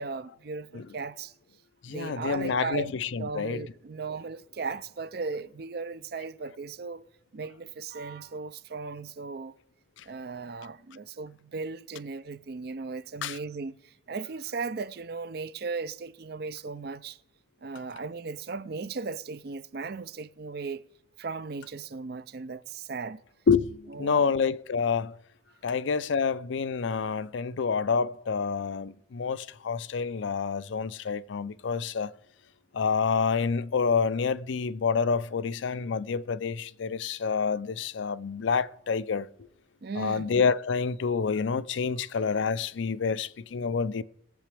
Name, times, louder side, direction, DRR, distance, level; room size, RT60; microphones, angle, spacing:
voice 1, 0.0-1.3 1.9-7.0 7.3-9.5 10.1-13.8 14.1-17.2 17.6-20.8 21.2-23.2 23.9-24.3 39.8-40.3, right 4 dB, 55° right, 0.5 m, -37 dB
voice 2, 1.8-3.6 13.2-13.4 23.5-25.2 25.6-32.1 32.7-39.3 40.0-44.0, left 5 dB, 75° left, 0.4 m, -28 dB
21.0 x 7.7 x 3.4 m
head